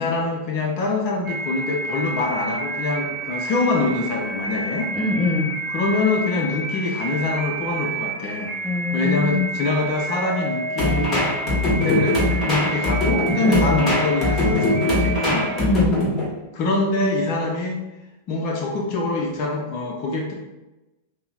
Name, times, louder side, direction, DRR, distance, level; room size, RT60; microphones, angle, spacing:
voice 1, 0.0-4.9 5.7-8.5 8.9-15.5 16.5-17.8 18.3-20.3, left 3 dB, 50° left, 0 dB, 0.6 m, -24 dB
sound 1, 1.3-15.6, right 2 dB, 35° right, 0.5 m, -29 dB
voice 2, 4.9-5.5 8.6-9.5 13.5-13.9 15.6-16.0, left 3 dB, 10° left, -2 dB, 0.8 m, -23 dB
sound 2, 10.8-16.3, left 2 dB, 30° left, 1.3 m, -22 dB
5.5 x 2.1 x 2.4 m, 1.0 s
hypercardioid pair, 100°, 0 cm